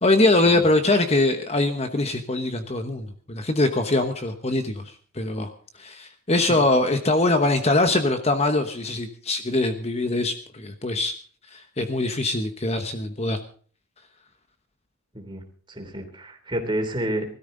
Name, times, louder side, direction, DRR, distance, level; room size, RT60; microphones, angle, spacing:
voice 1, 0.0-4.8 5.2-5.5 5.8-11.1 11.5-13.4, left 2 dB, 30° left, 7 dB, 1.1 m, -22 dB
voice 2, 15.7-17.4, right 1 dB, 20° right, 4 dB, 3.2 m, -29 dB
20.5 x 13.5 x 3.9 m, 0.43 s
head